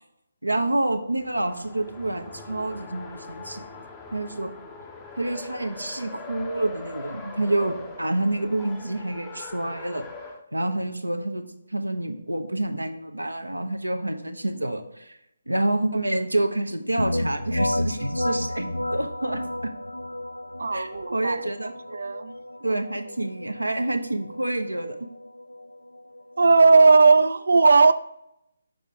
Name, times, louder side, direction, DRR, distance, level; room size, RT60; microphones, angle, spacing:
voice 1, 0.4-3.6 4.1-4.5 5.2-10.0 10.5-15.2 15.5-19.7 20.7-21.7 22.6-25.0, right 1 dB, 80° right, 0.8 m, -28 dB
Race car auto racing, 1.2-10.4, left 3 dB, 10° left, 0.6 m, -42 dB
sound 1, 17.0-26.6, left 1 dB, 80° left, 0.3 m, -32 dB
voice 2, 20.6-21.4 21.9-22.4 26.4-27.9, right 4 dB, 55° right, 0.4 m, -17 dB
6.5 x 4.9 x 3.4 m
figure-of-eight pair, 145°, 0 cm